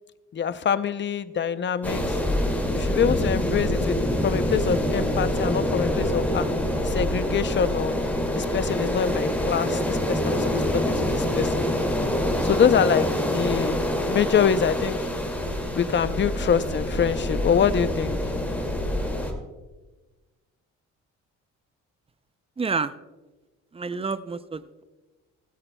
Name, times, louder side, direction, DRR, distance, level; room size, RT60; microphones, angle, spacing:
voice 1, 0.3-2.2 2.7-6.5 6.8-7.9 8.3-11.5 12.4-13.1 13.3-15.1 15.8-18.2, left 7 dB, 40° left, 13 dB, 0.6 m, -25 dB
sound 1, 1.8-19.3, left 1 dB, 5° left, 2.2 m, -26 dB
voice 2, 22.6-22.9 23.7-24.8, right 4 dB, 20° right, 14 dB, 0.5 m, -29 dB
16.0 x 13.5 x 2.2 m, 1.2 s
cardioid pair, 90°, 30 cm